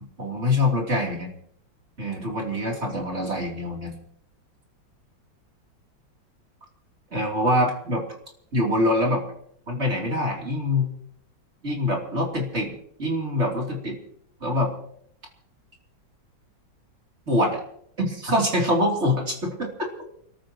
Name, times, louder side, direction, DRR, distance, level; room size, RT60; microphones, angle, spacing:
voice 1, 0.2-1.3 2.0-4.0 7.1-8.0 8.5-9.2 9.7-10.9 11.6-14.0 14.4-14.7 17.3-17.6 18.0-19.9, left 1 dB, 35° right, -1 dB, 3.7 m, -24 dB
28.5 x 14.5 x 3.1 m, 0.68 s
omnidirectional pair, 2.1 m